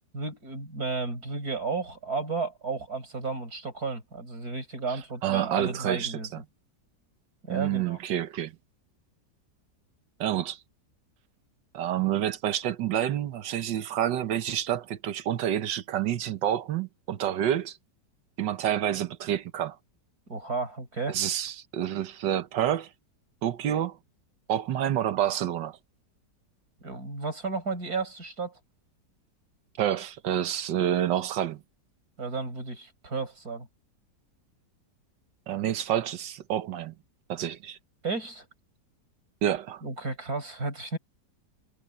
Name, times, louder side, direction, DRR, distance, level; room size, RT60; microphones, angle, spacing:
voice 1, 0.1-6.3 7.4-8.0 20.3-21.2 26.8-28.6 32.2-33.7 38.0-38.5 39.8-41.0, right 4 dB, 60° right, 6.7 m, -33 dB
voice 2, 5.2-6.4 7.5-8.5 10.2-10.6 11.7-17.8 18.4-19.8 21.1-22.9 23.4-24.0 24.5-25.8 29.8-31.6 35.5-36.9 37.3-37.8 39.4-39.8, right 11 dB, 85° right, 1.6 m, -28 dB
omnidirectional pair, 1.9 m